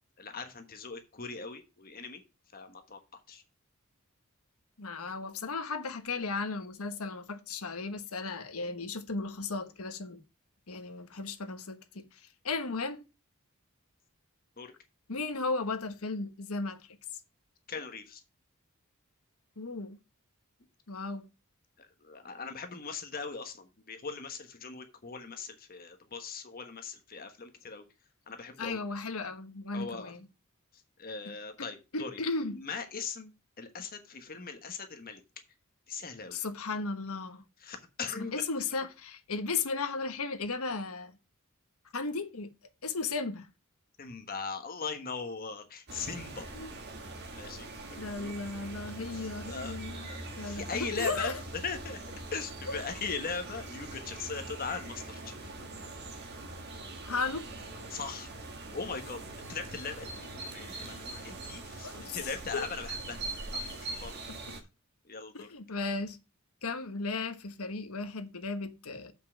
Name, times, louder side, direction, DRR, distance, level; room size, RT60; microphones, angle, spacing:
voice 1, 0.2-2.2 2.5-3.0 3.3-3.4 14.6-14.7 17.7-18.2 21.8-27.8 28.3-28.8 29.7-30.1 31.0-32.2 32.5-35.2 35.9-36.4 37.6-38.4 44.0-46.5 47.3-48.3 49.1-50.2 50.5-51.3 51.6-52.0 52.3-55.5 57.9-58.3 58.7-59.2 59.5-63.2 63.5-64.1 65.1-65.5, left 5 dB, 40° left, 1.3 m, -40 dB
voice 2, 4.8-10.2 10.7-12.2 12.4-13.0 15.1-16.8 19.6-20.0 20.9-21.2 28.6-30.2 31.6-31.7 31.9-32.6 36.3-37.4 38.1-41.1 41.9-42.5 42.8-43.5 46.5-46.7 48.0-51.4 52.7-52.8 57.1-57.5 61.8-62.7 65.3-66.2 66.6-69.1, left 3 dB, 80° left, 1.2 m, -35 dB
sound 1, 45.9-64.6, right 2 dB, 50° right, 1.8 m, -42 dB
7.6 x 5.5 x 5.9 m
head